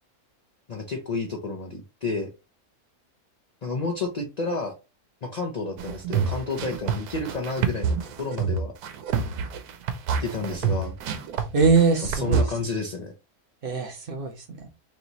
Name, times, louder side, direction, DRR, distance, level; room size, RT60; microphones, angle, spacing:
voice 1, 0.7-2.3 3.6-4.8 5.2-8.7 10.2-11.0 12.1-13.1, left 3 dB, 50° left, 1 dB, 0.5 m, -30 dB
sound 1, 5.8-12.4, right 6 dB, 85° right, 1.2 m, -27 dB
voice 2, 11.5-12.5 13.6-14.7, right 4 dB, 50° right, 5 dB, 0.7 m, -22 dB
3.2 x 3.0 x 3.9 m, 0.28 s
omnidirectional pair, 1.6 m